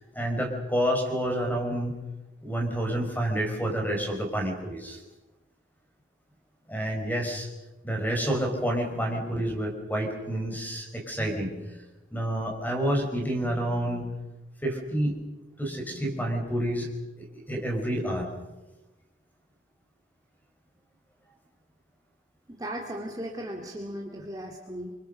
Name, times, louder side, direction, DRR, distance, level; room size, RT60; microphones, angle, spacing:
voice 1, 0.1-2.0 2.4-5.0 6.7-7.5 7.8-11.7 12.1-14.1 14.6-15.2 15.6-16.9 17.2-18.5, right 1 dB, 10° left, 2 dB, 5.0 m, -29 dB
voice 2, 22.5-24.9, equal, 20° right, 0 dB, 2.4 m, -36 dB
27.5 x 24.5 x 6.6 m, 1.1 s
head